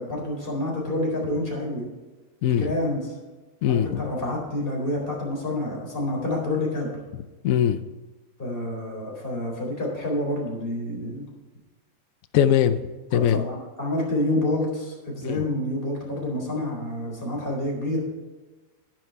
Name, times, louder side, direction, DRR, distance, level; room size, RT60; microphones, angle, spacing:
voice 1, 0.0-1.9 2.6-3.2 3.6-6.9 8.4-11.2 13.1-18.0, left 1 dB, 25° left, -3 dB, 4.4 m, -28 dB
voice 2, 2.4-2.7 3.6-4.0 7.4-7.8 12.3-12.8 13.1-13.4 15.2-15.4, left 10 dB, 85° left, 11 dB, 0.7 m, -21 dB
11.0 x 10.5 x 4.6 m, 1.2 s
omnidirectional pair, 2.1 m